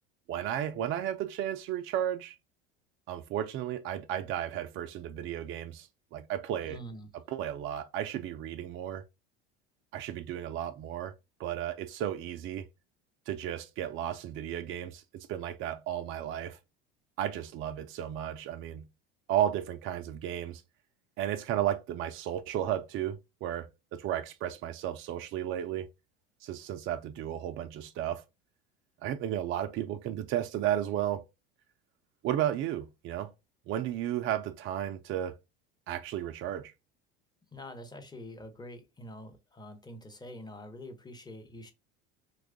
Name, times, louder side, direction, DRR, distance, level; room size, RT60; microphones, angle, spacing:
voice 1, 0.3-2.4 3.1-6.8 7.3-9.0 9.9-11.1 11.4-12.7 13.3-16.6 17.2-18.9 19.3-20.6 21.2-25.9 26.4-28.2 29.0-31.2 32.2-33.3 33.7-35.4 35.9-36.7, right 11 dB, 40° right, 0.4 m, -33 dB
voice 2, 6.6-7.1 37.5-41.7, left 1 dB, 15° left, 0.7 m, -46 dB
3.0 x 2.3 x 3.5 m
hypercardioid pair, 80°, 31 cm